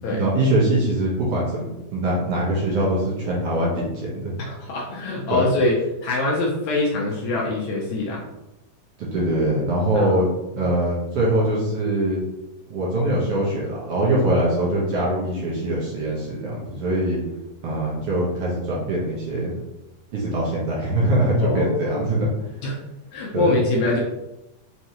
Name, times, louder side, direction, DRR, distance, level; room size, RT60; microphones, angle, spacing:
voice 1, 0.1-1.6 1.9-4.3 5.3-5.4 9.0-10.3 10.6-12.2 12.7-17.2 17.6-19.5 20.1-22.3 23.3-23.5, right 1 dB, 65° right, -5 dB, 1.5 m, -22 dB
voice 2, 4.5-8.2 9.9-10.1 10.5-10.7 21.4-22.3 22.6-22.8 23.1-24.0, left 2 dB, 70° left, -3 dB, 1.9 m, -24 dB
5.5 x 3.3 x 2.9 m, 0.94 s
omnidirectional pair, 3.7 m